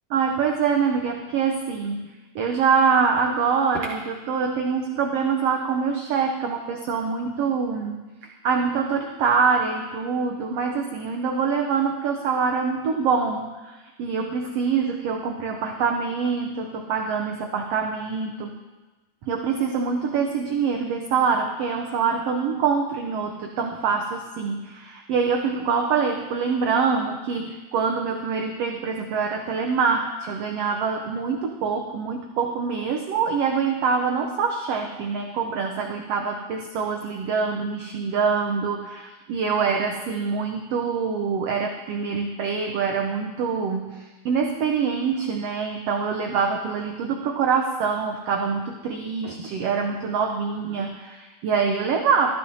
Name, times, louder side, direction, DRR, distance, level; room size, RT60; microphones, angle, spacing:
voice 1, 0.1-2.1 2.3-18.6 19.3-52.3, right 5 dB, 80° right, 3 dB, 1.4 m, -25 dB
14.5 x 13.0 x 2.7 m, 1.2 s
omnidirectional pair, 3.6 m